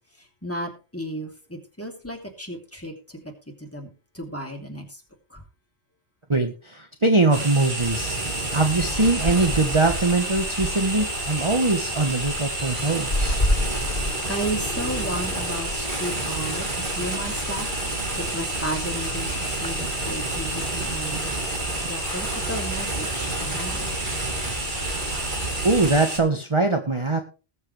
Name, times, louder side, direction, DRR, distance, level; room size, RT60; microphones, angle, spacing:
voice 1, 0.2-3.3 3.6-5.0 5.3-5.4 14.3-17.9 18.2-23.9, right 1 dB, 10° left, 1 dB, 3.0 m, -34 dB
voice 2, 6.3-8.2 8.5-13.5 25.6-27.2, right 3 dB, 25° right, 5 dB, 1.2 m, -22 dB
sound 1, 7.3-26.2, right 2 dB, 45° right, 2.7 m, -29 dB
sound 2, 8.8-26.0, left 1 dB, 50° left, 6.1 m, -32 dB
20.5 x 7.5 x 3.3 m, 0.34 s
omnidirectional pair, 1.2 m